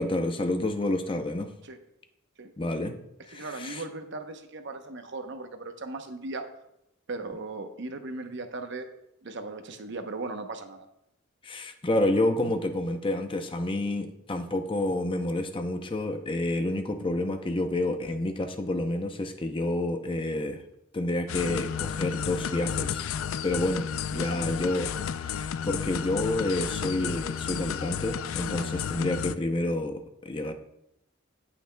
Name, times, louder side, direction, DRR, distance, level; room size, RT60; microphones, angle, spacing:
voice 1, 0.0-1.5 2.6-3.0 3.3-3.8 11.4-20.6 20.9-23.1 23.4-24.9 25.2-30.5, left 1 dB, 25° left, 7 dB, 0.6 m, -29 dB
voice 2, 3.3-6.5 7.1-8.9 9.2-10.9 24.1-24.4 28.5-28.9, right 3 dB, 60° right, 7 dB, 0.8 m, -38 dB
sound 1, 21.3-29.4, left 8 dB, 90° left, 0.4 m, -32 dB
17.0 x 5.9 x 2.2 m, 0.84 s
head